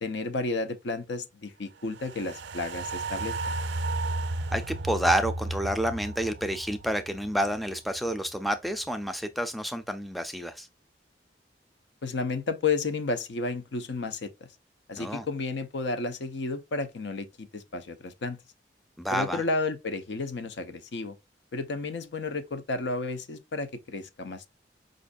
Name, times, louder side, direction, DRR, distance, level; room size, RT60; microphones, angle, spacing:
voice 1, 0.0-3.5 12.0-14.5 14.9-18.4 19.1-21.2 21.5-24.5, left 3 dB, 80° left, 0.6 m, -32 dB
sound 1, 1.9-8.3 8.7-8.8, right 2 dB, 80° right, 0.5 m, -34 dB
voice 2, 4.5-10.7 15.0-15.2 19.0-19.4, right 1 dB, ahead, 0.3 m, -29 dB
5.2 x 2.5 x 2.3 m
head